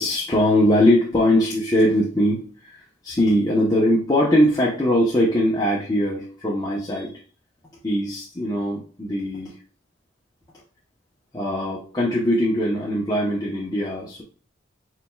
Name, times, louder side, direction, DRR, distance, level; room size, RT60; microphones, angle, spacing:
voice 1, 0.0-7.2 7.8-9.6 11.3-14.2, left 1 dB, 20° left, -4 dB, 0.9 m, -21 dB
5.0 x 4.4 x 2.3 m, 0.38 s
head